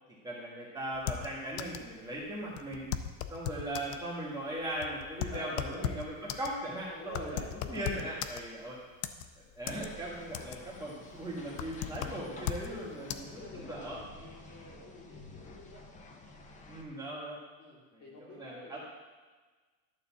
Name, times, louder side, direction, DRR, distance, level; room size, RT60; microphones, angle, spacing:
voice 1, 0.2-2.9 3.3-7.4 7.7-8.8 9.4-14.0 16.7-17.4 17.9-18.8, right 1 dB, 10° right, -8 dB, 1.7 m, -39 dB
sound 1, 0.9-1.9 2.2-2.3 2.6-4.0 4.6-8.7 9.0-9.9 10.2-10.8 11.1-12.7 13.1-13.2, left 10 dB, 60° left, 0.7 m, -37 dB
voice 2, 5.2-6.0 7.0-8.3 13.0-15.9 17.6-18.8, left 1 dB, 35° left, -2 dB, 2.4 m, -48 dB
sound 2, 9.7-16.8, left 2 dB, 15° left, 0.5 m, -50 dB
12.0 x 4.0 x 7.3 m, 1.4 s
cardioid pair, 165°, 44 cm